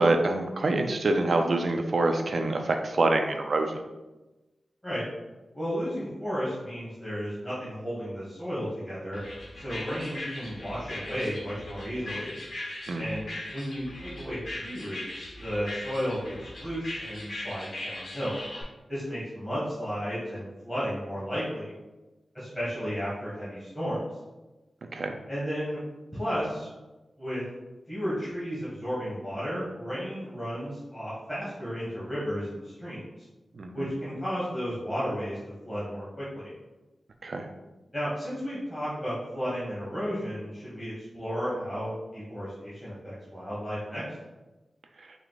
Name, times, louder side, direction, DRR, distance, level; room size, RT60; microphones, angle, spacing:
voice 1, 0.0-3.7 12.9-13.1 24.9-25.2 33.6-33.9 37.2-37.5, right 2 dB, 60° right, 5 dB, 0.4 m, -25 dB
voice 2, 5.5-9.2 9.6-12.3 13.0-18.4 18.9-21.7 22.3-24.0 25.3-25.8 26.1-26.7 27.2-27.4 27.9-33.0 33.7-35.4 35.6-36.5 37.9-44.0, equal, 10° left, -10 dB, 1.4 m, -33 dB
sound 1, 9.1-18.6, left 1 dB, 65° left, 1.2 m, -40 dB
4.5 x 2.2 x 3.9 m, 1.1 s
wide cardioid pair, 85°, 0 cm